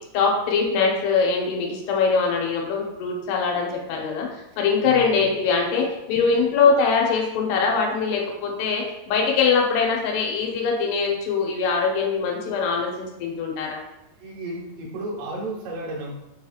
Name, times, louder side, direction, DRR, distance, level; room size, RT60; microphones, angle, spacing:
voice 1, 0.1-13.8, left 5 dB, 85° left, 0 dB, 2.8 m, -22 dB
voice 2, 14.2-16.1, right 2 dB, 70° right, -3 dB, 2.1 m, -33 dB
6.0 x 2.8 x 2.3 m, 0.90 s
omnidirectional pair, 4.6 m